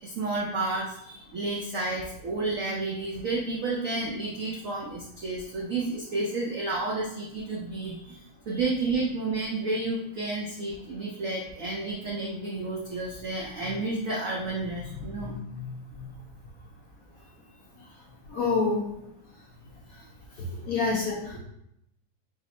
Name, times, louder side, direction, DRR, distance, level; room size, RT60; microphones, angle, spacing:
voice 1, 0.0-15.4 20.3-20.5, right 3 dB, 85° right, -2 dB, 0.7 m, -31 dB
voice 2, 15.5-16.1 18.3-18.8 20.6-21.4, left 4 dB, 65° left, -3 dB, 0.9 m, -28 dB
4.7 x 2.0 x 4.1 m, 0.79 s
omnidirectional pair, 2.2 m